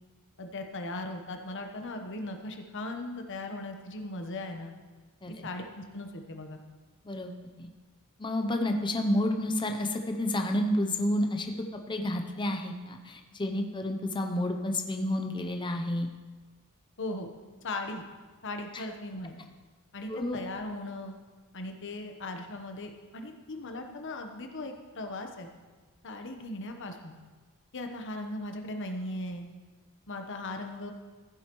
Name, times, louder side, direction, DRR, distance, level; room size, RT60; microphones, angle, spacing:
voice 1, 0.4-4.7 5.4-6.6 17.0-17.3 17.6-18.0 18.4-19.4 19.9-21.2 21.5-25.5 26.0-27.1 27.7-29.5 30.1-30.9, left 2 dB, 60° left, 5 dB, 1.1 m, -38 dB
voice 2, 8.2-16.1 18.7-18.8 20.1-20.4, left 1 dB, 20° left, 4 dB, 0.6 m, -30 dB
15.0 x 7.9 x 3.1 m, 1.3 s
head